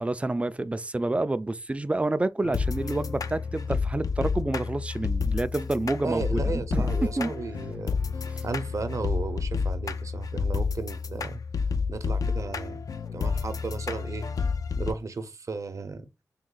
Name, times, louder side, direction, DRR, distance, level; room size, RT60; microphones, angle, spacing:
voice 1, 0.0-7.3 8.4-8.5, right 2 dB, 20° right, 0.3 m, -28 dB
sound 1, 2.4-14.9, left 5 dB, 65° left, 0.4 m, -30 dB
voice 2, 6.0-8.0 8.4-11.4 11.9-12.8 13.1-14.3 14.8-16.0, right 4 dB, 55° right, 0.6 m, -34 dB
3.5 x 2.3 x 3.8 m
wide cardioid pair, 90°, 6 cm